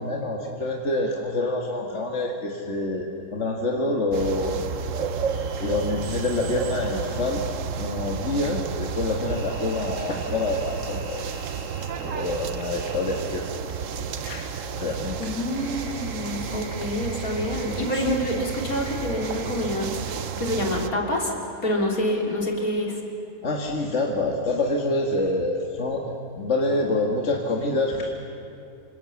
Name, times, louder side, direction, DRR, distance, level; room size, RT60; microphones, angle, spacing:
voice 1, 0.0-4.6 5.6-7.4 7.7-11.3 12.0-13.5 14.2-15.2 23.4-28.1, left 2 dB, 50° left, 0 dB, 2.1 m, -27 dB
sound 1, 4.1-20.9, right 6 dB, 60° right, 1.2 m, -32 dB
sound 2, 5.3-6.9 9.3-13.2 14.6-19.9 20.2-20.7, left 1 dB, 80° right, 7.2 m, -45 dB
voice 2, 15.2-21.3 21.6-23.0, left 1 dB, 70° left, 0 dB, 3.8 m, -27 dB
27.5 x 25.5 x 7.2 m, 2.6 s
omnidirectional pair, 1.6 m